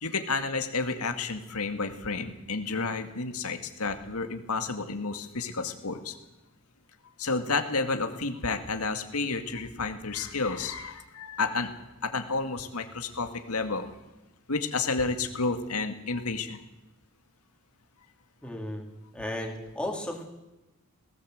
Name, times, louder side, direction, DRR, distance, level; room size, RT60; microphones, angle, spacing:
voice 1, 0.0-6.2 7.2-13.9 14.5-16.6, left 4 dB, 75° left, 6 dB, 2.1 m, -31 dB
voice 2, 18.4-18.9 19.1-20.2, left 1 dB, 5° left, 1 dB, 3.3 m, -34 dB
19.5 x 18.0 x 7.9 m, 1.0 s
head